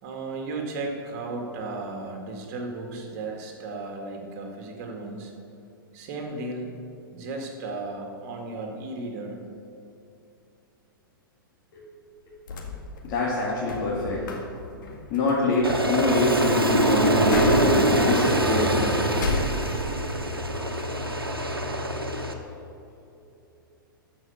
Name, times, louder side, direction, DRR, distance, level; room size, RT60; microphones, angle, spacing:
voice 1, 0.0-5.3 5.9-6.7 7.1-9.4, right 3 dB, 45° right, 2 dB, 2.1 m, -35 dB
sound 1, 12.2-20.2 20.6-21.4, left 4 dB, 60° left, 1.7 m, -36 dB
voice 2, 13.0-14.2 15.1-19.2, left 2 dB, 40° left, -5 dB, 2.3 m, -25 dB
Aircraft, 15.6-22.3, right 1 dB, 90° right, 1.1 m, -24 dB
13.5 x 5.6 x 6.7 m, 2.7 s
figure-of-eight pair, 105°, 12 cm